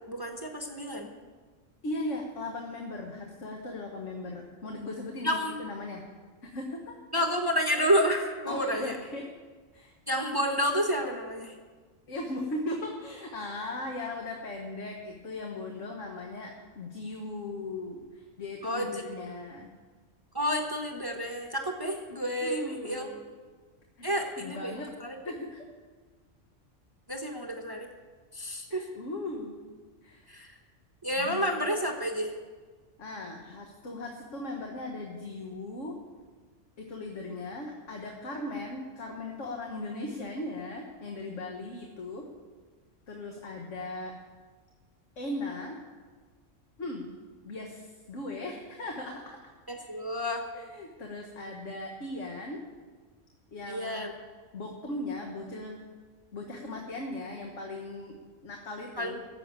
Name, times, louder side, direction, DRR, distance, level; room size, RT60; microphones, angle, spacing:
voice 1, 0.1-1.1 5.2-5.6 7.1-9.0 10.1-11.5 18.6-19.0 20.3-23.1 24.0-24.7 25.0-25.2 27.1-27.9 28.3-28.8 30.3-30.5 31.0-32.3 49.7-50.5 53.7-54.1 59.0-59.2, equal, 20° right, 2 dB, 1.1 m, -30 dB
voice 2, 1.8-6.1 6.4-7.0 8.5-9.3 9.7-9.9 12.1-19.7 22.4-23.2 24.0-24.1 24.4-24.9 25.2-25.7 28.7-29.5 30.0-30.3 31.2-31.5 33.0-36.0 36.8-42.3 43.1-44.1 45.2-45.8 46.8-47.1 47.4-49.4 50.5-52.6 53.5-54.1 54.5-55.8 56.3-59.2, left 2 dB, 75° left, 1 dB, 1.6 m, -38 dB
13.5 x 7.8 x 8.6 m, 1.4 s
omnidirectional pair, 1.3 m